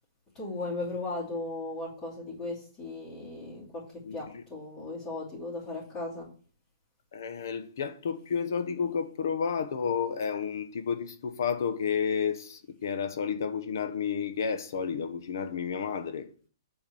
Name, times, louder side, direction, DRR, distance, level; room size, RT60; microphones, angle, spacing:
voice 1, 0.3-3.8 4.1-6.3, left 2 dB, 15° left, 3.1 m, -36 dB
voice 2, 4.0-4.4 7.1-16.3, left 6 dB, 55° left, 1.0 m, -31 dB
8.5 x 4.6 x 7.0 m
hypercardioid pair, 170°, 2 cm